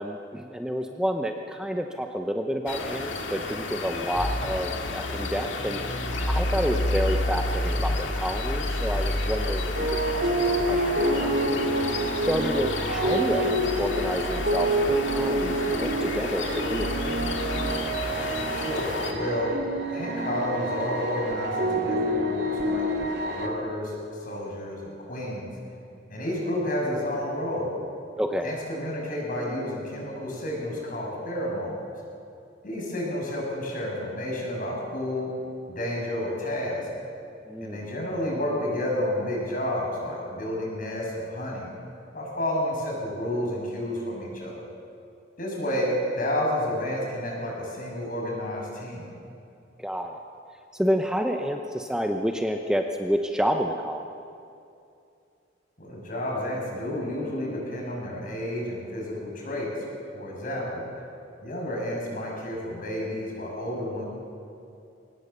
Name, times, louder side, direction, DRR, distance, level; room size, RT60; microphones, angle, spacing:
voice 1, 0.0-10.9 11.2-11.4 12.2-16.9 28.2-28.5 37.5-37.8 49.8-50.2 50.7-54.1, equal, 5° right, 3 dB, 0.8 m, -29 dB
sound 1, 2.7-19.1, left 2 dB, 90° left, 2.0 m, -30 dB
sound 2, 9.7-23.5, right 1 dB, 60° right, 2.9 m, -27 dB
voice 2, 18.5-19.6 19.9-22.8 23.3-23.9 24.2-25.5 26.1-27.8 28.4-31.8 32.6-35.3 35.7-36.9 37.6-41.7 42.1-44.5 45.4-49.1 55.8-59.7 60.1-60.9 61.4-64.1, left 1 dB, 50° left, -2 dB, 6.7 m, -30 dB
23.5 x 18.5 x 6.8 m, 2.5 s
head